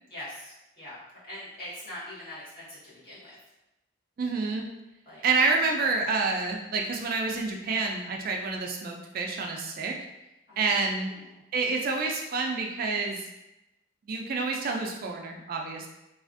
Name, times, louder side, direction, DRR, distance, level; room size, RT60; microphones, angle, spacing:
voice 1, 0.1-1.0 1.3-3.3 5.0-5.2 10.5-10.8 11.0-11.4, left 1 dB, 50° left, -10 dB, 1.5 m, -43 dB
voice 2, 4.2-4.7 5.2-9.9 10.6-11.1 11.5-13.2 14.1-15.9, right 4 dB, 50° right, 1 dB, 0.3 m, -28 dB
3.3 x 2.4 x 2.5 m, 0.93 s
head